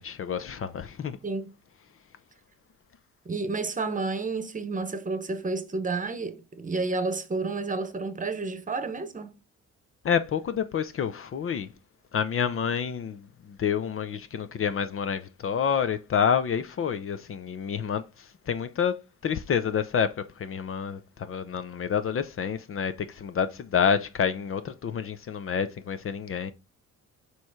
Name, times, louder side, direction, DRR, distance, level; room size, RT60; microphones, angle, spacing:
voice 1, 0.0-1.2 10.0-11.7 12.1-19.0 19.2-26.5, left 7 dB, 45° left, 0.6 m, -28 dB
voice 2, 3.2-9.4, right 3 dB, 25° right, 1.0 m, -30 dB
6.9 x 3.2 x 4.9 m
cardioid pair, 90°, 30 cm